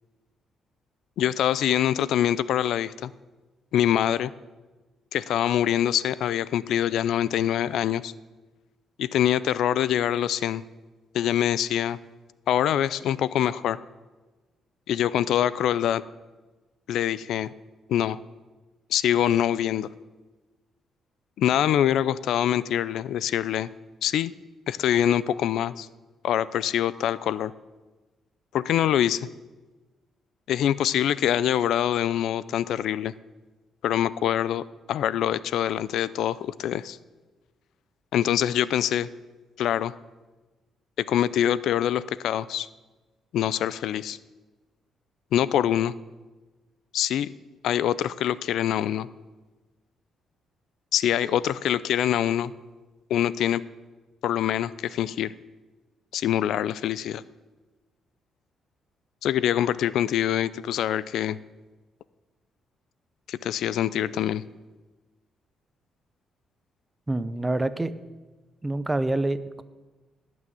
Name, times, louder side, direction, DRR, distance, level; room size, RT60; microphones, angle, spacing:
voice 1, 1.2-3.1 3.7-4.3 5.1-8.1 9.0-10.6 11.1-12.0 12.5-13.8 14.9-16.0 16.9-17.5 17.9-18.2 18.9-19.9 21.4-23.7 24.0-24.3 24.7-25.9 26.2-27.5 28.5-29.3 30.5-33.1 33.8-37.0 38.1-39.1 39.6-39.9 41.0-42.7 43.3-44.2 45.3-45.9 46.9-47.3 47.6-49.1 50.9-52.5 53.1-53.6 54.2-55.3 56.1-57.2 59.2-61.4 63.3-64.4, left 10 dB, 80° left, 18 dB, 0.4 m, -24 dB
voice 2, 67.1-67.9 68.6-69.6, right 2 dB, 15° right, 14 dB, 0.8 m, -26 dB
18.5 x 6.3 x 9.2 m, 1.2 s
cardioid pair, 105°, 0 cm